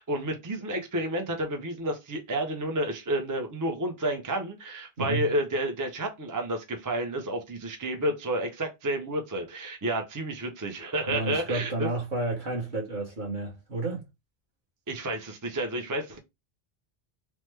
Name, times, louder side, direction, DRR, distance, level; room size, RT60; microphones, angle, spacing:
voice 1, 0.0-11.9 14.9-16.2, right 1 dB, 30° right, 0.3 m, -30 dB
voice 2, 5.0-5.3 11.1-14.0, right 2 dB, 45° right, 1.1 m, -31 dB
3.1 x 2.1 x 3.2 m
omnidirectional pair, 1.2 m